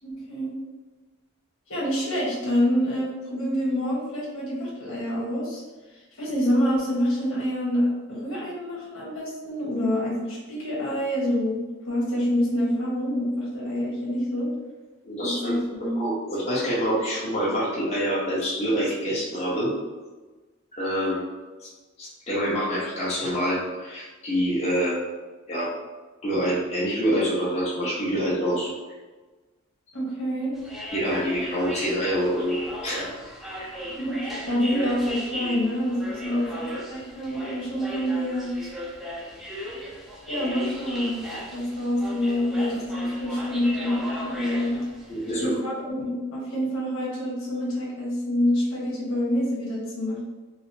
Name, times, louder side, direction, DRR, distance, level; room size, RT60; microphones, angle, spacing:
voice 1, 0.0-0.5 1.7-5.6 6.2-11.6 11.8-14.5 15.2-15.9 29.9-30.5 33.9-36.6 36.9-38.5 40.3-41.2 41.5-44.8 45.3-50.2, equal, 80° left, -7 dB, 1.3 m, -27 dB
voice 2, 15.0-15.6 16.0-19.7 20.7-21.2 21.6-21.7 22.0-25.0 25.5-25.7 26.2-28.7 30.9-32.6 32.8-33.1 33.6-33.7 36.2-36.4 45.1-45.6, equal, 30° left, -8 dB, 1.0 m, -26 dB
sound 1, 30.5-45.5, equal, ahead, 0.5 m, -37 dB
4.8 x 2.0 x 2.7 m, 1.3 s
head